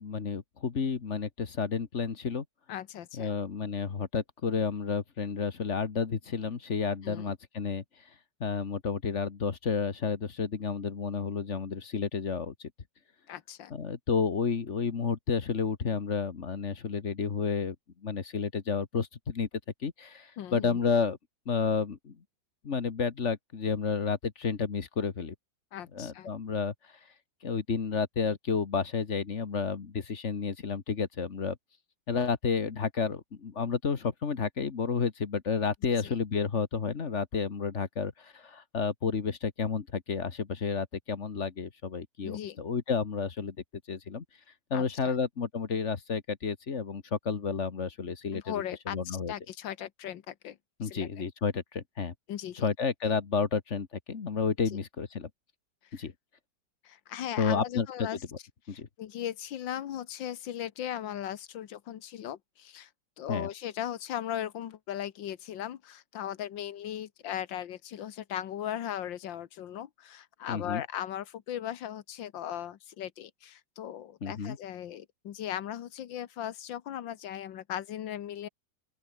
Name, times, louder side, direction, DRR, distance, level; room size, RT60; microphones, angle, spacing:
voice 1, 0.0-2.4 3.2-7.8 8.4-12.7 13.7-17.7 18.0-19.5 19.8-21.2 21.5-22.1 22.6-25.3 25.9-26.7 27.4-31.6 32.1-43.5 43.9-44.2 44.7-49.3 50.8-52.1 52.6-55.3 55.9-56.1 57.4-58.1 58.7-58.9 63.3-63.5 70.5-70.8 74.2-74.6, left 5 dB, 40° left, 1.6 m, -31 dB
voice 2, 2.7-3.3 7.0-7.3 13.3-13.7 20.4-20.8 25.7-26.3 36.0-36.1 42.2-42.6 44.7-45.1 48.3-50.6 50.8-51.1 52.3-52.7 55.9-56.1 56.8-58.2 58.7-62.9 63.2-78.5, left 10 dB, 85° left, 1.8 m, -38 dB
open air
omnidirectional pair, 2.0 m